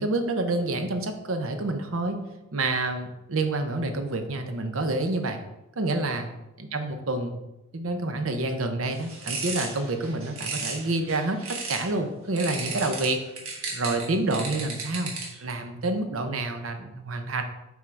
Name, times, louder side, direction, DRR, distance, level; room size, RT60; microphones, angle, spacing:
voice 1, 0.0-2.2 2.5-5.4 5.8-6.3 6.6-7.4 7.7-11.4 11.7-13.2 13.7-15.1 15.4-17.4, right 2 dB, 70° right, 6 dB, 0.7 m, -28 dB
sound 1, 8.9-11.9 12.4-15.5, right 4 dB, 90° right, 1.4 m, -35 dB
6.1 x 3.6 x 4.5 m, 0.93 s
head